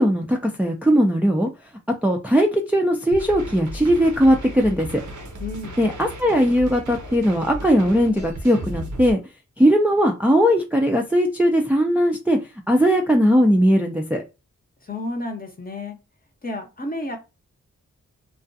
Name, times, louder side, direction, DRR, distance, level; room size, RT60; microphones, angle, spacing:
voice 1, 0.0-1.5 2.0-5.0 5.8-9.2 9.6-12.4 12.7-14.2, equal, 5° right, 0.4 m, -19 dB
sound 1, 3.1-9.1, right 1 dB, 70° right, 0.6 m, -35 dB
voice 2, 5.4-5.8 14.9-16.0 16.4-17.2, left 2 dB, 30° left, 0.7 m, -31 dB
2.3 x 2.3 x 2.6 m
cardioid pair, 55°, 31 cm